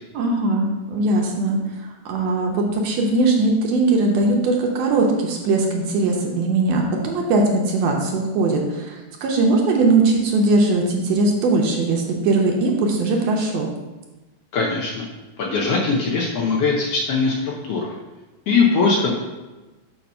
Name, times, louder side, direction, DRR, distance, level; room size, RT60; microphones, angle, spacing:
voice 1, 0.1-1.6 2.1-13.7, right 2 dB, 75° right, 1 dB, 1.8 m, -20 dB
voice 2, 14.5-15.0 15.4-17.9 18.5-19.1, left 4 dB, 70° left, -2 dB, 1.5 m, -21 dB
6.8 x 2.8 x 5.5 m, 1.2 s
omnidirectional pair, 3.3 m